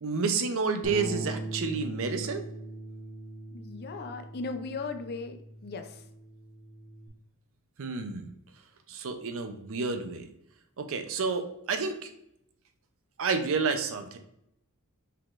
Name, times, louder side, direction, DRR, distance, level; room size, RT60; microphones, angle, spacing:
voice 1, 0.0-2.4 7.8-8.3 8.9-10.3 10.8-12.1 13.2-14.2, right 4 dB, 65° right, 8 dB, 0.6 m, -30 dB
Bass guitar, 0.8-7.1, right 2 dB, 30° left, 0.9 m, -41 dB
voice 2, 3.5-6.0, left 4 dB, 45° left, 7 dB, 0.5 m, -37 dB
5.5 x 3.7 x 2.5 m, 0.79 s
head